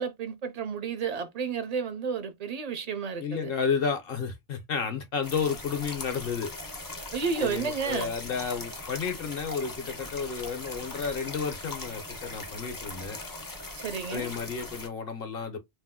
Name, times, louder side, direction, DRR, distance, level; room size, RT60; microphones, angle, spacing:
voice 1, 0.0-3.5 7.1-8.1 13.8-14.3, right 6 dB, 45° right, 0.5 m, -31 dB
voice 2, 3.2-6.5 7.4-13.2 14.1-15.6, left 6 dB, 55° left, 0.8 m, -32 dB
sound 1, 5.2-14.9, left 2 dB, 25° left, 0.5 m, -40 dB
2.7 x 2.0 x 3.6 m
omnidirectional pair, 1.3 m